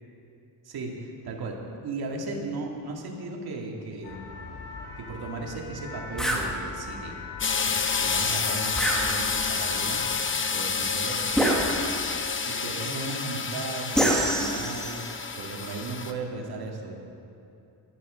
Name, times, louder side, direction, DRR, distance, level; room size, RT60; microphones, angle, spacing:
voice 1, 0.6-1.6 1.8-4.2 5.0-7.2 7.6-10.0 10.5-11.9 12.4-16.9, right 3 dB, 60° right, 1 dB, 2.2 m, -36 dB
sound 1, 4.0-11.7, left 3 dB, 65° left, 1.7 m, -41 dB
sound 2, 6.2-6.5 8.8-9.6 11.4-12.2 14.0-15.1, right 1 dB, ahead, 1.6 m, -26 dB
sound 3, 7.4-16.1, left 5 dB, 30° left, 0.8 m, -29 dB
12.0 x 9.7 x 6.3 m, 2.8 s
cardioid pair, 110°, 42 cm